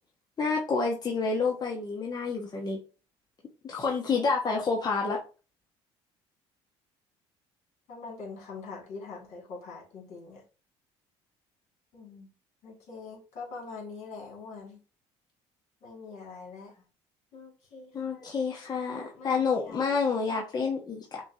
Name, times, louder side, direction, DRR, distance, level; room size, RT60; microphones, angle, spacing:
voice 1, 0.4-2.8 3.6-5.2 17.9-21.2, left 4 dB, 35° left, -1 dB, 1.0 m, -29 dB
voice 2, 7.9-10.4 11.9-12.3 12.6-14.8 15.8-16.7 17.3-18.4 18.7-20.0, left 4 dB, 65° left, -2 dB, 2.3 m, -44 dB
5.9 x 2.4 x 2.7 m, 0.34 s
supercardioid pair, 90°, 12 cm